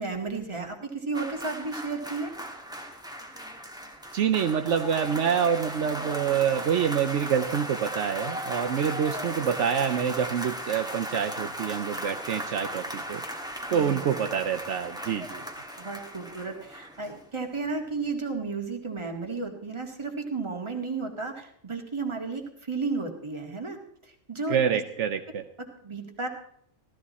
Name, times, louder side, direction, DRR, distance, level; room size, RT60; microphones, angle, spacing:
voice 1, 0.0-2.3 13.7-14.0 15.1-15.2 15.8-23.8 24.0-24.8 25.6-26.3, right 4 dB, 25° right, 2 dB, 1.8 m, -33 dB
sound 1, 1.1-17.4 17.7-17.9, equal, 5° right, 1.4 m, -37 dB
voice 2, 4.1-13.2 13.7-15.4 24.5-25.4, right 8 dB, 75° right, 7 dB, 1.0 m, -26 dB
15.5 x 13.0 x 4.1 m, 0.68 s
omnidirectional pair, 1.3 m